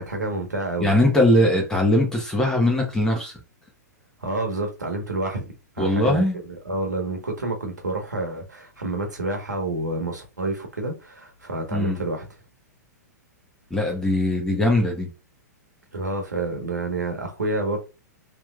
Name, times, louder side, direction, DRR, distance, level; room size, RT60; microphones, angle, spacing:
voice 1, 0.0-0.9 4.2-12.3 15.9-17.8, right 2 dB, 85° right, 1.2 m, -29 dB
voice 2, 0.8-3.3 5.8-6.4 11.7-12.0 13.7-15.1, left 1 dB, 5° left, 1.2 m, -20 dB
3.3 x 3.2 x 2.4 m
figure-of-eight pair, 110°, 9 cm